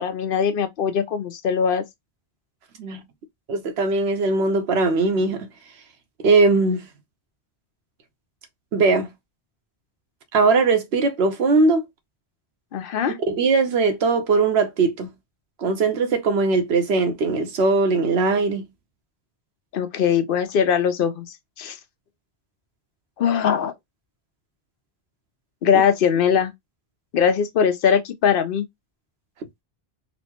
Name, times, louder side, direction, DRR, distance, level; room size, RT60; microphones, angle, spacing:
voice 1, 0.0-1.8 12.7-13.2 19.7-21.3 21.6-21.8 23.2-23.7 25.6-26.5 27.1-28.6, left 7 dB, 65° left, 0.7 m, -21 dB
voice 2, 3.5-5.5 6.2-6.8 8.7-9.1 10.3-11.8 13.3-15.1 15.6-18.6, right 3 dB, 85° right, 1.0 m, -20 dB
4.1 x 2.0 x 2.8 m
omnidirectional pair, 1.0 m